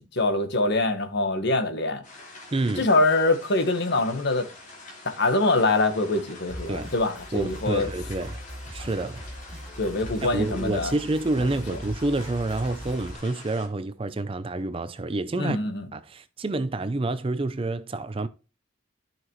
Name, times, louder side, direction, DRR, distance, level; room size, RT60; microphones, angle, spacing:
voice 1, 0.1-2.0 2.8-4.5 5.0-7.9 9.8-10.9 11.7-11.8 15.4-15.9, left 2 dB, 55° left, 1.4 m, -24 dB
sound 1, 2.0-13.7, left 2 dB, 35° left, 2.4 m, -46 dB
voice 2, 2.5-2.9 6.7-6.9 7.3-8.4 8.7-9.2 10.3-15.6 15.9-18.3, right 2 dB, 25° right, 0.4 m, -28 dB
sound 2, 6.5-13.1, equal, 5° right, 3.8 m, -40 dB
12.0 x 5.9 x 3.1 m
head